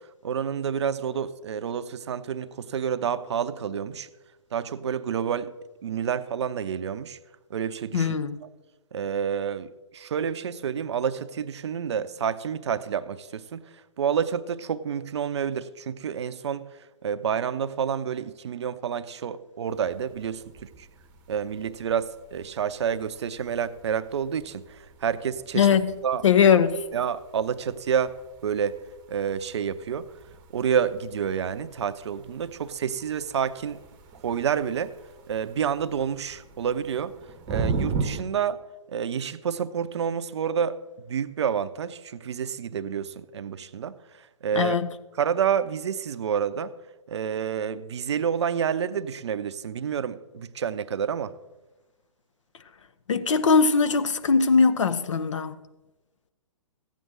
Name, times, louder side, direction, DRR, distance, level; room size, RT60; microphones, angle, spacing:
voice 1, 0.2-4.1 4.5-5.5 5.8-7.2 7.5-8.1 8.9-13.6 14.0-16.7 17.0-20.7 21.3-25.7 26.0-26.2 26.9-28.2 28.4-28.8 29.1-30.1 30.5-33.8 34.2-34.9 35.3-37.1 37.5-38.6 38.9-40.8 41.1-44.0 44.4-44.8 45.2-46.7 47.1-51.3, right 7 dB, 55° right, 0.6 m, -29 dB
voice 2, 7.9-8.4 25.5-25.9 26.2-26.8 44.5-44.9 53.1-55.5, left 5 dB, 60° left, 0.7 m, -20 dB
sound 1, 19.6-38.2, right 4 dB, 25° right, 0.8 m, -39 dB
14.5 x 9.3 x 3.7 m
figure-of-eight pair, 125°, 17 cm